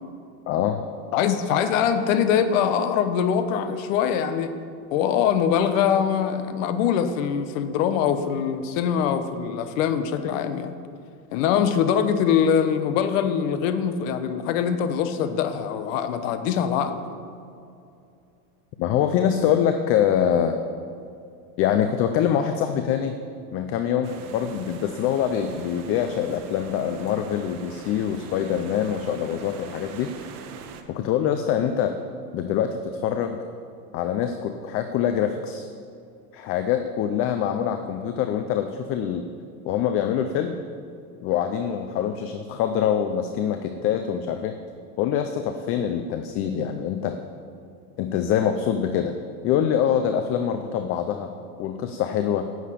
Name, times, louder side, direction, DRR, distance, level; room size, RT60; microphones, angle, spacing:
voice 1, 0.5-0.8 18.8-20.5 21.6-23.2 23.5-30.4 30.9-32.0 32.3-33.4 33.9-35.7 36.3-39.3 39.6-40.6 41.2-44.6 45.0-47.2 48.0-49.1 49.4-51.3 51.6-52.5, left 9 dB, 30° left, 7 dB, 0.5 m, -24 dB
voice 2, 1.1-4.5 4.9-10.7 11.3-17.0, left 8 dB, 55° left, 9 dB, 1.2 m, -23 dB
sound 1, 24.0-30.8, right 6 dB, 65° right, 1.3 m, -42 dB
10.0 x 7.2 x 8.5 m, 2.5 s
supercardioid pair, 130°, 47 cm